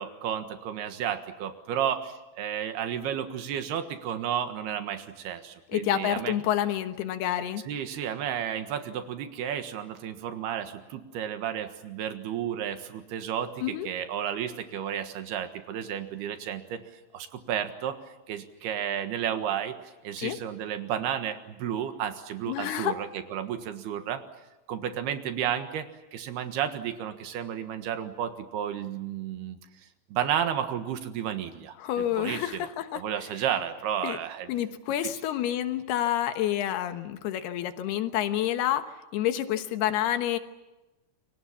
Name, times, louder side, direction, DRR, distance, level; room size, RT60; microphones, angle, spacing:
voice 1, 0.0-6.3 7.7-24.2 24.7-29.6 30.1-32.7 32.9-34.5 35.0-35.1, right 9 dB, 80° right, 8 dB, 3.5 m, -32 dB
voice 2, 5.7-7.6 13.6-13.9 20.2-20.4 22.5-22.9 31.8-33.0 34.0-34.2 34.5-38.8 39.1-40.4, left 12 dB, 80° left, 9 dB, 3.2 m, -28 dB
28.5 x 24.0 x 7.2 m, 1.0 s
omnidirectional pair, 4.6 m